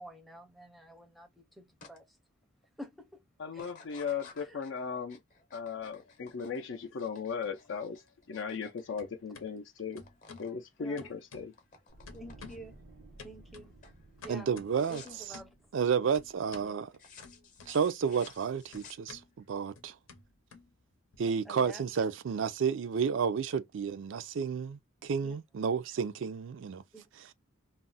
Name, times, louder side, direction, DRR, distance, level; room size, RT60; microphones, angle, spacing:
voice 1, 0.0-2.1 2.8-3.2 3.5-3.6 4.5-4.6 10.8-11.1 12.1-12.7 13.2-13.7 14.2-14.5 14.9-15.5 16.6-16.8 21.5-21.8 25.2-25.4 26.9-27.0, right 1 dB, ahead, 0.5 m, -48 dB
sound 1, 1.8-2.0 2.4-2.9 3.5-9.6 9.8-10.6 10.8-12.8 13.3-13.6 13.8-14.0 14.7-15.3 16.9-19.5, left 5 dB, 40° left, 0.7 m, -55 dB
voice 2, 3.4-5.2 5.5-10.0 10.4-11.5, left 6 dB, 65° left, 0.4 m, -37 dB
mysounds-Maxime-peluche, 5.8-6.8 7.1-8.7 9.0-9.5 10.0-10.5 11.0-11.8 12.1-12.7 13.2-15.6 16.1-16.7 17.2-18.1 18.3-21.2, left 4 dB, 85° left, 0.7 m, -53 dB
sound 2, 11.9-17.0 17.3-17.5, right 1 dB, 90° right, 0.9 m, -56 dB
voice 3, 14.3-15.4 15.7-16.9 17.7-20.0 21.2-26.8 27.1-27.3, right 6 dB, 65° right, 0.3 m, -31 dB
2.4 x 2.0 x 3.8 m
head